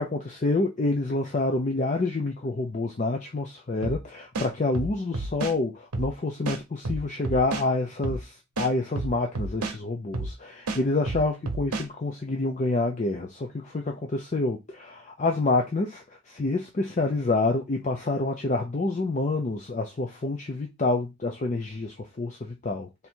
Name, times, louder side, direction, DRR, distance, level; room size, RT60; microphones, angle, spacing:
voice 1, 0.0-22.9, left 2 dB, 35° left, 0.5 m, -28 dB
sound 1, 3.8-4.0 4.3-5.6 5.9-6.1 6.5-7.7 8.0-8.2 8.6-9.8 10.1-10.3 10.7-11.9, right 2 dB, 80° right, 0.8 m, -30 dB
3.5 x 2.7 x 4.4 m
head